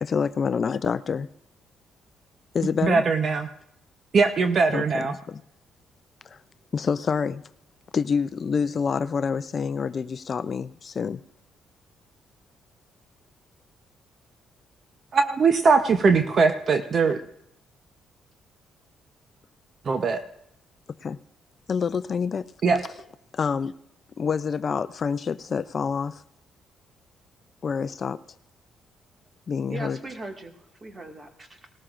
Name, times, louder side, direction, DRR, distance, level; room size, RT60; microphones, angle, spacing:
voice 1, 0.0-1.3 2.5-3.0 4.7-5.4 6.2-6.4 6.7-7.4 7.9-11.2 21.0-21.2 21.7-22.5 23.3-23.7 24.2-26.2 27.6-28.2 29.5-30.0, left 6 dB, 45° left, 14 dB, 0.4 m, -27 dB
voice 2, 2.8-3.5 4.1-5.1 15.1-17.2 19.9-20.2 22.6-22.8, right 4 dB, 50° right, 8 dB, 0.8 m, -21 dB
voice 3, 29.7-31.7, right 2 dB, 30° right, 4 dB, 2.0 m, -39 dB
19.0 x 13.5 x 2.5 m, 0.76 s
cardioid pair, 90°, 0 cm